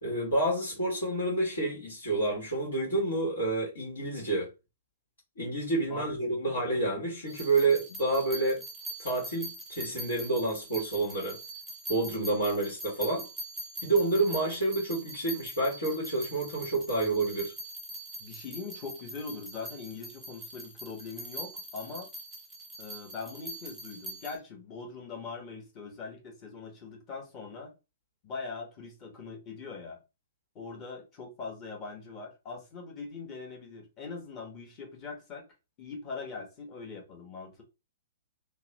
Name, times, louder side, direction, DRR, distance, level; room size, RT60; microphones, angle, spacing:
voice 1, 0.0-4.5 5.4-8.6 9.0-11.4 11.9-13.3 13.8-17.5, right 2 dB, 70° left, 1.2 m, -29 dB
sound 1, 7.3-24.4, right 1 dB, ahead, 0.8 m, -43 dB
voice 2, 18.2-22.1 22.8-27.7 28.2-30.0 30.5-35.4 35.8-37.6, left 4 dB, 25° left, 1.0 m, -41 dB
2.9 x 2.0 x 3.0 m
figure-of-eight pair, 115°, 0 cm